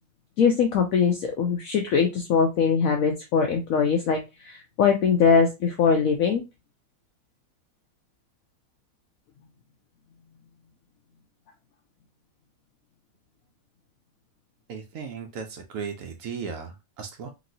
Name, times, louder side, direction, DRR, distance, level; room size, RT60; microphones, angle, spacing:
voice 1, 0.4-6.4, left 6 dB, 75° left, 3 dB, 0.7 m, -22 dB
voice 2, 14.7-17.3, right 6 dB, 85° right, 4 dB, 0.7 m, -36 dB
3.0 x 2.9 x 2.5 m, 0.25 s
omnidirectional pair, 2.0 m